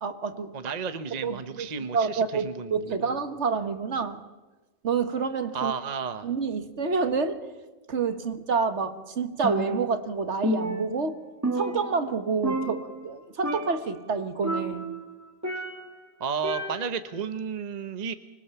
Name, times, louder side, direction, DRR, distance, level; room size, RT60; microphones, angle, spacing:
voice 1, 0.0-0.5 1.2-1.7 1.9-4.2 4.8-5.7 6.2-7.4 7.9-11.2 11.5-14.9, right 5 dB, 55° right, 9 dB, 1.6 m, -28 dB
voice 2, 0.5-3.2 5.5-6.3 16.2-18.1, right 6 dB, 35° right, 10 dB, 0.9 m, -32 dB
Percussion, 9.4-10.1 10.4-12.2 12.4-13.1 13.4-13.9 14.4-16.0 16.4-17.1, right 1 dB, 10° right, 1.5 m, -31 dB
25.0 x 20.5 x 6.9 m, 1.2 s
omnidirectional pair, 1.4 m